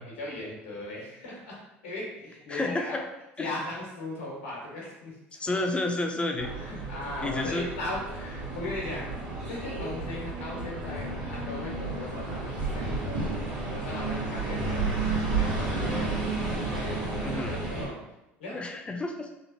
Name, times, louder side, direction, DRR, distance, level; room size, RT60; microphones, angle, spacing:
voice 1, 0.0-1.6 1.8-3.0 3.4-5.6 6.5-9.1 9.4-16.1 16.7-18.0 18.4-18.6, left 2 dB, 90° left, -4 dB, 1.0 m, -38 dB
voice 2, 2.5-3.0 3.4-3.5 5.4-6.5 7.2-7.7 15.8-16.0 17.2-17.5 18.5-19.3, left 2 dB, 20° left, 2 dB, 0.4 m, -30 dB
sound 1, 6.4-17.9, right 3 dB, 85° right, 1.1 m, -32 dB
3.0 x 2.0 x 2.7 m, 0.93 s
hypercardioid pair, 75°, 6 cm